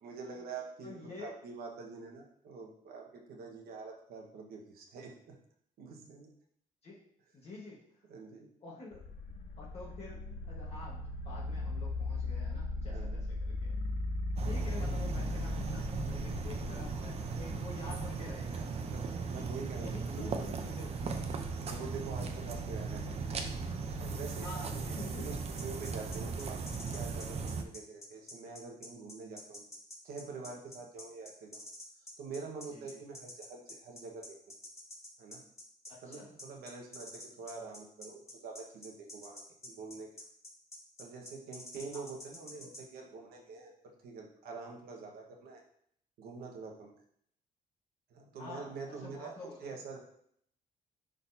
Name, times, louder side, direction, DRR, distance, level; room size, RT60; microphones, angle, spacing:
voice 1, 0.0-5.4 5.8-6.3 8.1-8.5 12.9-13.2 14.8-14.9 18.9-20.5 20.9-21.0 21.6-23.2 24.0-24.6 25.2-29.6 30.0-31.6 32.2-34.4 35.2-35.5 36.0-40.2 41.0-45.6 46.2-46.9 48.1-49.3 49.6-50.0, right 4 dB, 85° right, 1 dB, 1.4 m, -46 dB
voice 2, 0.8-1.3 6.8-7.0 7.3-8.1 8.6-9.0 9.6-13.8 14.4-19.5 19.8-21.2 22.2-22.3 24.3-25.3 32.7-33.0 36.0-36.3 41.9-42.0 48.4-49.7, left 3 dB, 40° left, -5 dB, 1.5 m, -48 dB
sound 1, 8.9-17.7, left 2 dB, 65° left, 0.7 m, -37 dB
sound 2, 14.4-27.6, right 4 dB, 45° right, 0.7 m, -38 dB
sound 3, 25.6-42.8, left 1 dB, 20° left, 1.3 m, -48 dB
10.0 x 4.0 x 2.8 m, 0.67 s
cardioid pair, 140°, 15 cm